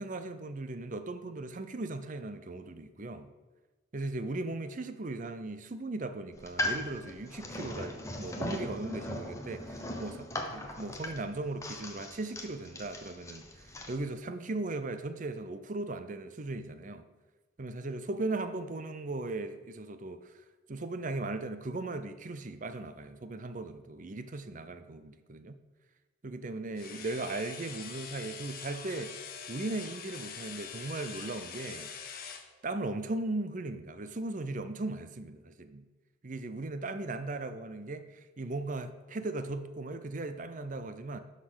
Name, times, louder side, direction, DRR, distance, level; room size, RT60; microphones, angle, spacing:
voice 1, 0.0-3.3 3.9-17.1 17.6-20.3 20.7-25.6 26.2-29.1 29.5-31.9 32.6-35.8 36.2-41.2, right 2 dB, 40° right, 0.6 m, -38 dB
sound 1, 6.3-14.0, left 1 dB, 15° left, 0.9 m, -39 dB
sound 2, 26.8-32.5, left 6 dB, 50° left, 0.9 m, -44 dB
11.5 x 4.1 x 6.2 m
head